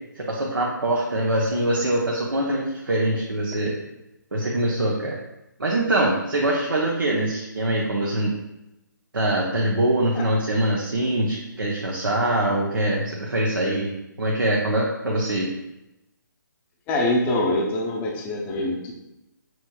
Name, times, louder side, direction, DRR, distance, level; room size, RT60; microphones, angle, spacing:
voice 1, 0.2-3.7 4.3-5.2 5.6-8.4 9.1-13.9 14.2-15.5, right 1 dB, 90° right, -3 dB, 0.9 m, -23 dB
voice 2, 16.9-18.9, left 1 dB, 15° left, -1 dB, 0.5 m, -24 dB
6.1 x 3.1 x 2.3 m, 0.93 s
figure-of-eight pair, 150°, 11 cm